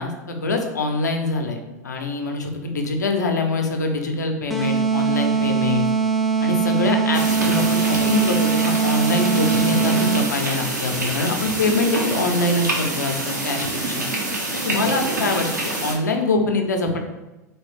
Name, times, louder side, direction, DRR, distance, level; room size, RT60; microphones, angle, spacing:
voice 1, 0.0-5.9 6.4-14.0 14.6-17.0, left 2 dB, 80° left, 4 dB, 0.5 m, -24 dB
sound 1, 4.5-10.5, right 5 dB, ahead, 0.5 m, -21 dB
sound 2, 7.1-15.9, right 2 dB, 85° right, 0.7 m, -26 dB
3.1 x 2.9 x 3.2 m, 1.0 s
figure-of-eight pair, 85°, 9 cm